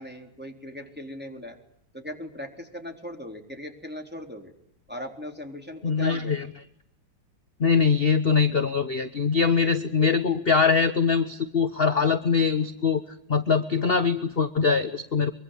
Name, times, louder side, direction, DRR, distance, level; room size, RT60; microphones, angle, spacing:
voice 1, 0.0-1.6 1.9-4.5 4.9-6.5, left 1 dB, 5° right, 2 dB, 3.8 m, -38 dB
voice 2, 5.8-6.4 7.6-13.0 13.3-15.3, left 5 dB, 35° left, 9 dB, 1.1 m, -22 dB
24.0 x 23.5 x 9.1 m, 0.74 s
omnidirectional pair, 2.3 m